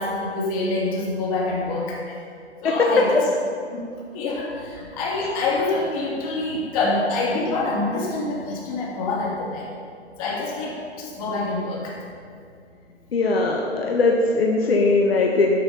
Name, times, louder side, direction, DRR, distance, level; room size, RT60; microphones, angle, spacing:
voice 1, 0.0-2.1 2.6-3.3 3.7-3.9 4.1-9.6 10.2-11.9, left 2 dB, 35° left, -3 dB, 2.4 m, -26 dB
voice 2, 13.1-15.6, left 3 dB, 60° left, 0 dB, 1.3 m, -20 dB
11.5 x 7.1 x 5.5 m, 2.3 s
figure-of-eight pair, 125°, 33 cm